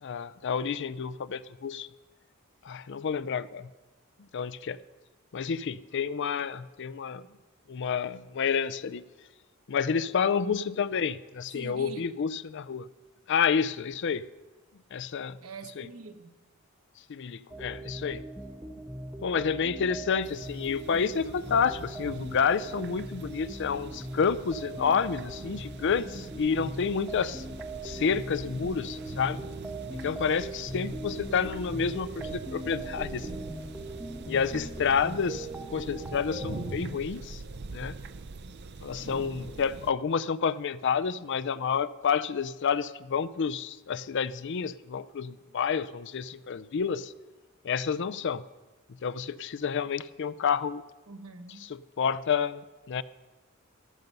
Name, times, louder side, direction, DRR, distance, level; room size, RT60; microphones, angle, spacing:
voice 1, 0.0-1.9 2.7-3.7 4.3-4.8 5.3-7.2 7.7-9.0 9.7-12.9 13.3-14.2 14.9-15.4 15.8-15.9 17.1-18.2 19.2-27.4 27.8-29.4 29.9-33.3 34.3-37.4 37.7-38.0 38.8-47.1 47.6-48.4 49.0-50.8 51.6-53.0, left 6 dB, 55° left, 16 dB, 0.4 m, -29 dB
voice 2, 11.5-12.3 15.4-16.3 51.1-51.7, right 3 dB, 75° right, 6 dB, 1.3 m, -45 dB
sound 1, 17.5-36.8, right 1 dB, 10° right, 0.7 m, -40 dB
sound 2, 20.2-39.9, right 3 dB, 50° right, 0.5 m, -44 dB
13.5 x 12.0 x 5.4 m, 1.2 s
head